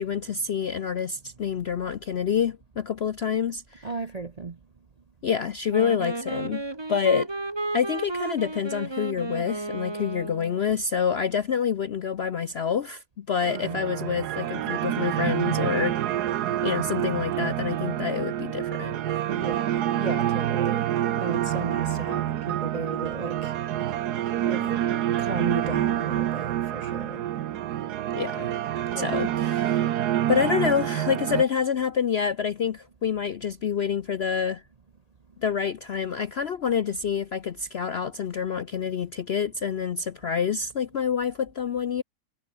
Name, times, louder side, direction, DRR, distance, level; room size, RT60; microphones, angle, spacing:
voice 1, 0.0-3.9 5.2-6.6 6.9-7.3 7.7-16.1 16.6-19.0 28.1-28.5 29.0-30.0 30.3-34.6 35.4-42.0, left 7 dB, 60° left, 0.7 m, -27 dB
voice 2, 3.8-4.5 13.6-13.8 19.3-20.9 21.2-23.5 24.5-24.8 25.2-27.2 28.9-29.3, right 4 dB, 35° right, 0.6 m, -34 dB
Wind instrument woodwind instrument, 5.7-10.7, right 2 dB, 15° right, 1.5 m, -33 dB
sound 1, 13.4-31.4, right 12 dB, 75° right, 1.3 m, -27 dB
omnidirectional pair, 1.8 m